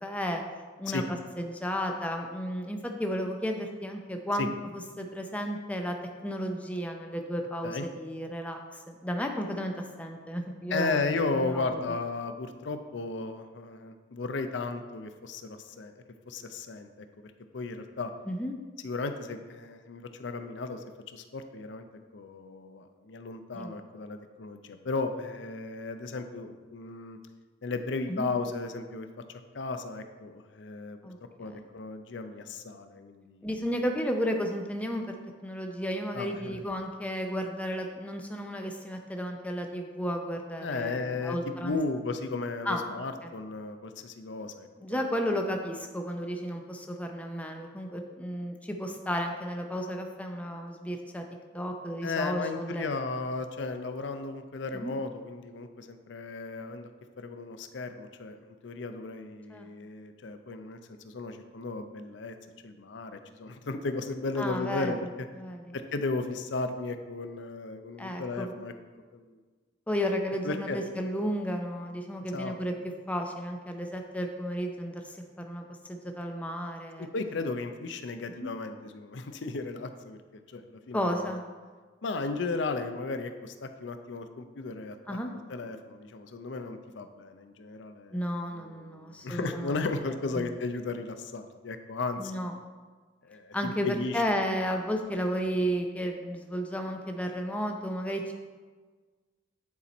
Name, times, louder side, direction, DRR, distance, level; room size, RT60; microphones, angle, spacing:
voice 1, 0.0-0.4 0.8-1.0 1.4-6.0 6.2-11.1 11.4-11.8 18.3-18.5 23.5-23.8 28.1-28.3 31.0-31.6 33.4-35.1 35.4-41.8 42.6-42.8 43.2-43.3 44.4-44.5 44.8-51.3 51.5-52.8 54.7-54.9 59.5-59.7 64.4-64.9 65.4-65.8 68.0-68.5 69.9-72.7 73.1-77.1 78.4-78.5 80.9-81.4 85.1-85.3 88.1-89.8 90.3-90.5 92.2-92.5 93.5-93.9 94.1-98.3, equal, 5° left, 3 dB, 0.5 m, -33 dB
voice 2, 10.7-15.9 16.3-16.9 17.2-18.1 18.8-21.8 22.1-27.2 27.6-29.1 29.5-31.0 31.4-33.5 36.1-36.6 40.6-41.4 41.6-45.1 52.0-56.9 57.2-60.8 61.0-62.4 62.6-65.1 65.7-68.7 69.1-69.4 70.4-70.8 72.3-72.5 77.0-81.4 82.0-85.2 85.5-92.3 93.2-94.2, left 3 dB, 70° left, 8 dB, 0.5 m, -35 dB
9.6 x 4.3 x 4.1 m, 1.4 s
head